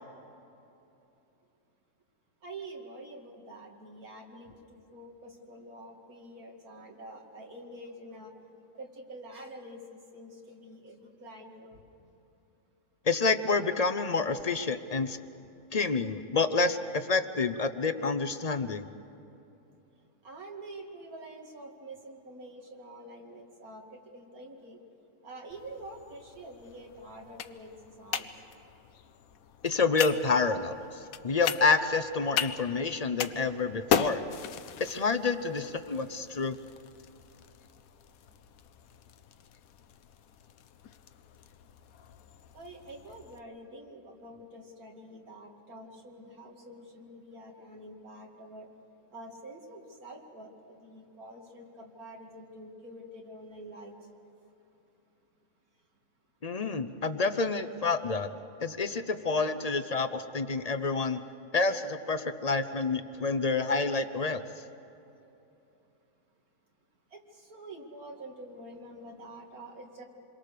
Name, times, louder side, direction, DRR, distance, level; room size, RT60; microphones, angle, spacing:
voice 1, 2.4-8.4 8.7-12.1 20.2-24.8 25.2-28.3 42.5-48.7 49.1-54.0 67.1-70.0, right 1 dB, 75° right, 0 dB, 2.8 m, -47 dB
voice 2, 13.0-15.2 15.7-18.9 29.6-34.2 34.8-36.6 56.4-58.3 58.6-61.2 61.5-64.4, left 4 dB, 40° left, 10 dB, 0.6 m, -28 dB
sound 1, 25.5-43.4, left 8 dB, 70° left, 1.2 m, -38 dB
27.5 x 22.5 x 6.8 m, 2.9 s
omnidirectional pair, 1.6 m